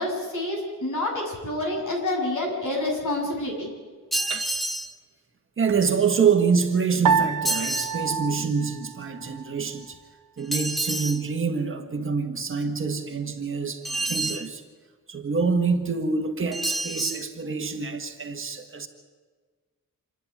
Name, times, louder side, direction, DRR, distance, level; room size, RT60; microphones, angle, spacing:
voice 1, 0.0-3.7, left 1 dB, 65° left, 0 dB, 7.3 m, -28 dB
sound 1, 4.1-4.9 7.4-8.0 10.5-11.2 13.8-14.5 16.5-17.2, right 2 dB, ahead, 0.8 m, -28 dB
voice 2, 5.6-10.0 10.4-14.6 15.1-18.9, right 5 dB, 40° right, 4 dB, 1.6 m, -26 dB
Piano, 7.1-9.6, right 6 dB, 65° right, 0.9 m, -27 dB
27.0 x 11.0 x 9.9 m, 1.5 s
wide cardioid pair, 175°, 34 cm